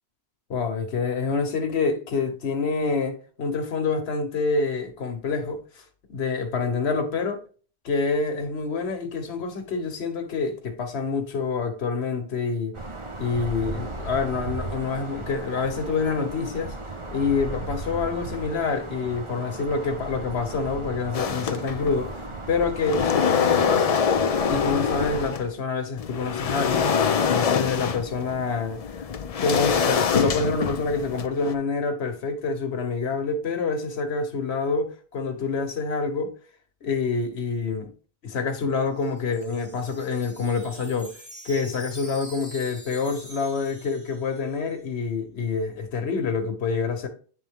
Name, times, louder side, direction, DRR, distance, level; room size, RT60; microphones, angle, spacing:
voice 1, 0.5-5.8 6.1-7.4 7.8-12.8 13.2-16.8 17.1-24.0 24.5-26.9 27.3-36.3 36.8-37.9 38.2-41.2 41.4-47.1, left 4 dB, 85° left, 1.3 m, -27 dB
sound 1, 12.7-25.3, right 2 dB, 30° right, 0.9 m, -36 dB
sound 2, 21.1-22.1 22.5-25.5 26.0-31.5, left 6 dB, 50° left, 0.5 m, -25 dB
Wind chime, 38.7-44.7, right 1 dB, 5° right, 2.3 m, -45 dB
9.2 x 3.5 x 3.5 m
omnidirectional pair, 1.1 m